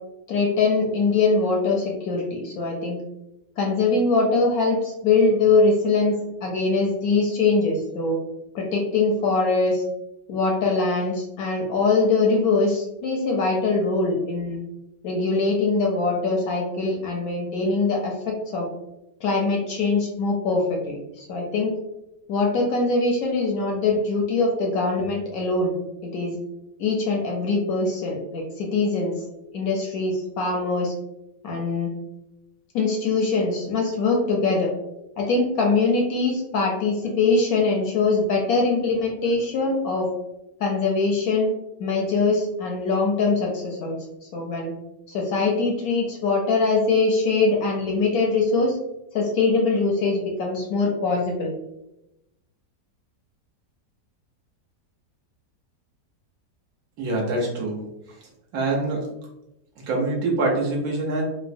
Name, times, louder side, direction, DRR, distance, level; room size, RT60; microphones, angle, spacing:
voice 1, 0.3-3.0 3.6-8.2 8.5-9.8 10.3-14.6 15.0-18.7 19.2-21.7 22.3-25.7 26.1-26.4 26.8-29.1 29.5-30.9 31.4-31.9 32.7-34.7 35.2-40.1 40.6-41.5 41.8-44.7 45.1-48.8 49.1-51.5, left 3 dB, 70° left, 0 dB, 0.9 m, -22 dB
voice 2, 57.0-57.8 58.5-59.0 59.9-61.2, right 2 dB, 65° right, -2 dB, 1.1 m, -24 dB
3.2 x 2.0 x 2.5 m, 0.90 s
omnidirectional pair, 1.8 m